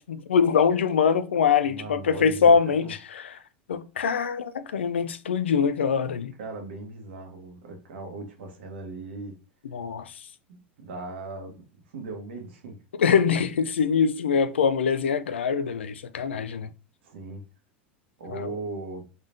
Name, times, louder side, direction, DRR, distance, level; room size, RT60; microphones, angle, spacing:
voice 1, 0.0-2.9 3.7-6.3 9.7-10.1 13.0-16.7 18.3-18.5, left 6 dB, 85° left, 0.4 m, -23 dB
voice 2, 1.6-2.5 2.8-2.9 6.4-9.3 10.5-11.6 11.9-12.8 17.0-17.4 18.2-19.1, right 3 dB, 75° right, 1.3 m, -38 dB
3.9 x 3.6 x 2.6 m
hypercardioid pair, 90°, 6 cm